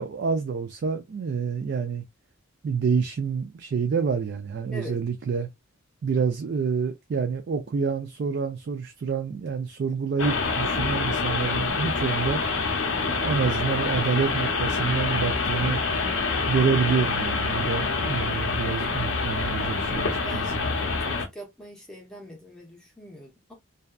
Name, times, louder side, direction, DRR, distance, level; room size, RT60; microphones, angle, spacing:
voice 1, 0.0-2.0 2.6-5.5 6.0-12.4 13.1-15.8 16.5-20.2, right 5 dB, 55° right, 0.3 m, -27 dB
sound 1, 10.2-21.3, left 4 dB, 70° left, 0.6 m, -26 dB
voice 2, 20.2-20.6 21.1-23.5, equal, 5° left, 0.6 m, -42 dB
2.6 x 2.2 x 2.2 m
head